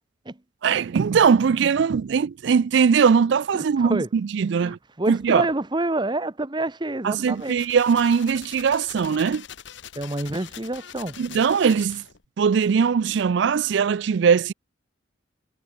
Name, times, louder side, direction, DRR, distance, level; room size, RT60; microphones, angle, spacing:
voice 1, 0.6-4.8 5.1-5.5 7.0-9.5 11.2-12.0 12.4-14.5, right 6 dB, 60° right, 0.4 m, -20 dB
voice 2, 4.6-7.6 10.0-11.2, right 2 dB, 25° right, 0.9 m, -27 dB
sound 1, 7.3-12.3, left 9 dB, 65° left, 1.0 m, -43 dB
head